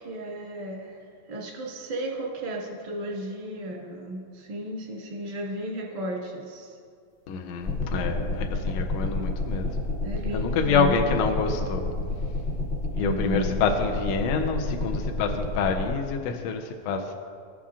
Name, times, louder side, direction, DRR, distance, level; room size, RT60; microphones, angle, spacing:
voice 1, 0.0-6.8 10.0-11.0 13.0-13.6, right 1 dB, 35° right, -3 dB, 0.8 m, -34 dB
voice 2, 7.3-9.8 10.3-11.9 12.9-17.1, left 5 dB, 75° left, 3 dB, 1.7 m, -27 dB
sound 1, 7.7-16.0, left 2 dB, 30° left, 1.1 m, -30 dB
16.0 x 7.2 x 2.4 m, 2.2 s
omnidirectional pair, 3.4 m